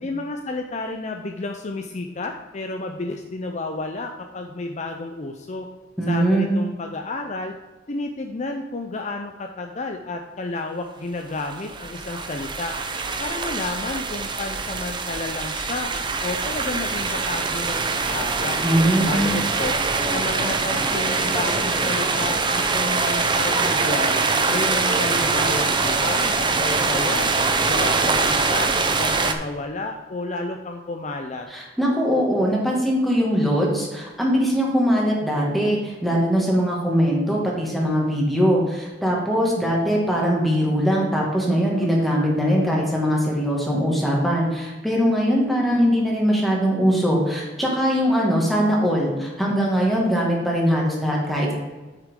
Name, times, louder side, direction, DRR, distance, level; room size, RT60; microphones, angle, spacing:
voice 1, 0.0-5.7 6.1-7.5 7.9-12.7 13.2-15.9 16.2-18.6 19.0-19.7 20.1-24.2 24.5-27.3 27.7-31.5, left 2 dB, 40° left, 4 dB, 0.6 m, -31 dB
voice 2, 6.0-6.6 18.6-19.3 31.5-51.5, equal, ahead, -3 dB, 2.0 m, -21 dB
sound 1, 11.3-29.3, right 4 dB, 25° right, 0.6 m, -23 dB
8.3 x 6.6 x 3.7 m, 1.2 s
head